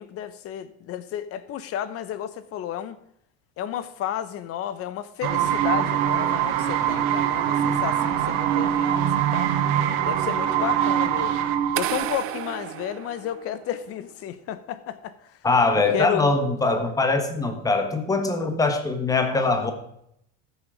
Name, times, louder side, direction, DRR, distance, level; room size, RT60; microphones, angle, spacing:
voice 1, 0.0-3.0 3.6-9.5 10.0-11.3 11.7-15.2 15.7-16.2, left 10 dB, 45° left, 14 dB, 0.9 m, -32 dB
sound 1, 5.2-12.1, right 10 dB, 75° right, 1.4 m, -23 dB
sound 2, 11.7-13.8, right 14 dB, 40° right, 0.5 m, -32 dB
voice 2, 15.4-19.7, left 3 dB, 10° left, 6 dB, 1.4 m, -22 dB
14.5 x 6.5 x 4.9 m, 0.73 s
cardioid pair, 140°, 33 cm